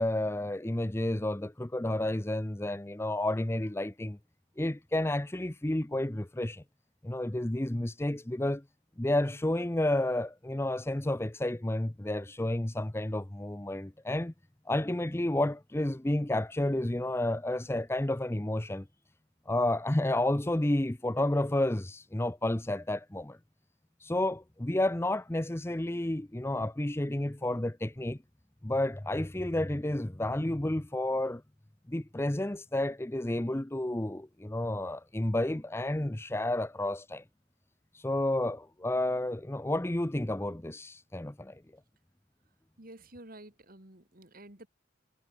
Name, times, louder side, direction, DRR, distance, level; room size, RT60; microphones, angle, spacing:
voice 1, 0.0-4.2 4.6-6.6 7.0-8.6 9.0-14.3 14.7-18.9 19.5-23.4 24.0-28.2 28.6-31.4 31.9-37.2 37.9-41.6, left 1 dB, 10° left, 0.6 m, -31 dB
voice 2, 42.8-44.7, right 1 dB, 45° right, 4.0 m, -50 dB
head